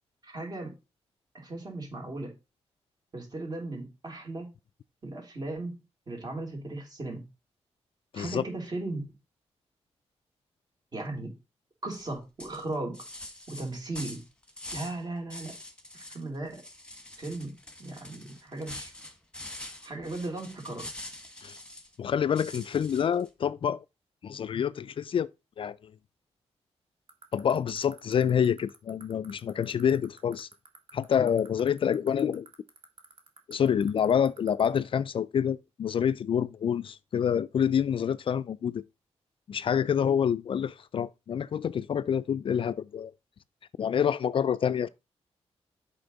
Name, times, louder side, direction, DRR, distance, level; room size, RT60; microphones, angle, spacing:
voice 1, 0.2-0.8 1.3-2.4 3.1-4.5 5.0-7.2 8.1-9.0 10.9-11.3 11.8-13.0 13.5-14.2 14.7-15.5 15.9-16.6 17.2-18.9 19.8-20.9, right 2 dB, 40° right, 3.1 m, -37 dB
voice 2, 8.1-8.4 21.4-21.5 22.0-23.8 24.2-25.3 25.6-25.9 27.3-30.5 30.9-32.5 33.5-38.8 39.5-43.1 43.8-44.9, left 8 dB, 50° left, 0.3 m, -27 dB
sound 1, 11.9-12.1 12.4-15.0 15.3-16.2 16.5-21.9 22.4-23.3, left 1 dB, 10° left, 1.4 m, -44 dB
sound 2, 27.1-34.8, right 5 dB, 55° right, 1.7 m, -49 dB
8.0 x 5.7 x 3.9 m
cardioid pair, 110°, 11 cm